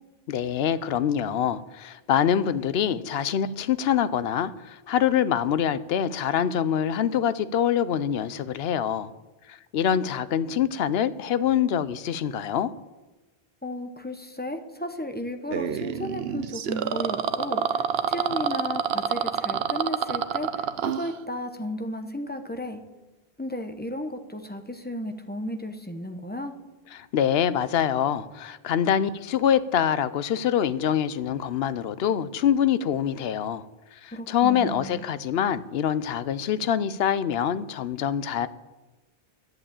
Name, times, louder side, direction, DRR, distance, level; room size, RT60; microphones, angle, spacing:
voice 1, 0.3-9.1 9.5-12.7 26.9-33.7 33.9-38.5, left 9 dB, 75° left, 15 dB, 0.8 m, -25 dB
voice 2, 13.6-20.7 20.9-22.8 23.4-26.5 34.1-35.0, left 1 dB, 10° left, 6 dB, 0.8 m, -34 dB
sound 1, 15.5-21.1, right 8 dB, 75° right, 0.9 m, -27 dB
11.0 x 7.9 x 8.8 m, 1.1 s
omnidirectional pair, 1.0 m